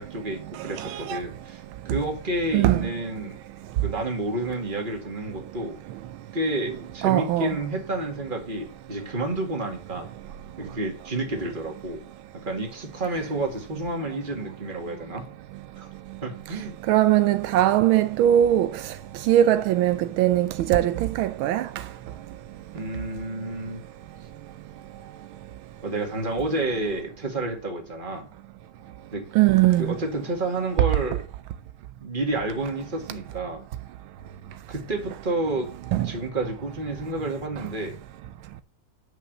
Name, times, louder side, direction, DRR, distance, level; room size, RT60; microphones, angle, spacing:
voice 1, 0.0-3.4 3.8-5.8 6.3-10.1 10.6-12.0 12.3-15.2 15.8-15.9 16.2-16.7 22.7-23.8 25.8-28.3 29.1-29.2 29.8-31.2 32.0-33.6 34.7-35.7 36.0-38.0, right 2 dB, 25° right, 2.2 m, -30 dB
voice 2, 0.5-1.2 1.9-2.0 2.5-2.9 7.0-7.6 16.5-21.9 29.3-30.0 35.9-36.1, right 12 dB, 85° right, 1.4 m, -21 dB
9.5 x 5.5 x 6.6 m
omnidirectional pair, 2.2 m